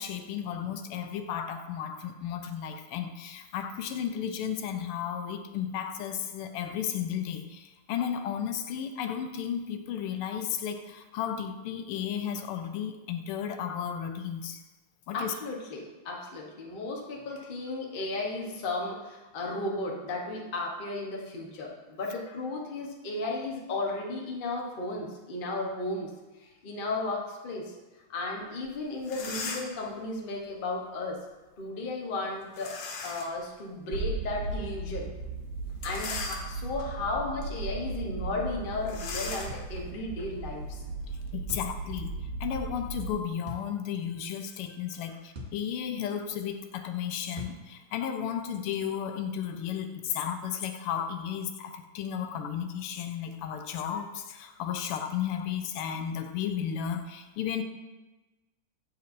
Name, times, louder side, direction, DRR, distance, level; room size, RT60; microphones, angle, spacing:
voice 1, 0.0-14.6 15.1-15.3 41.3-42.1 42.4-57.6, left 8 dB, 90° left, 7 dB, 1.5 m, -34 dB
voice 2, 15.1-26.1 26.4-27.7 28.1-31.2 31.6-32.7 33.0-35.1 35.8-40.8, left 2 dB, 40° left, -1 dB, 0.7 m, -34 dB
sound 1, 28.6-28.7 29.0-29.9 32.5-33.4 33.9-34.0 35.7-36.8 37.4-37.6 37.9-38.0 38.9-41.3, left 4 dB, 70° left, 0.9 m, -39 dB
sound 2, 33.9-43.1, right 3 dB, 90° right, 1.6 m, -37 dB
sound 3, 39.5-39.7 41.5-41.8 43.4-43.7 45.3-45.6 47.3-47.6, left 1 dB, 45° right, 0.9 m, -41 dB
7.1 x 7.1 x 2.6 m, 1.1 s
omnidirectional pair, 2.4 m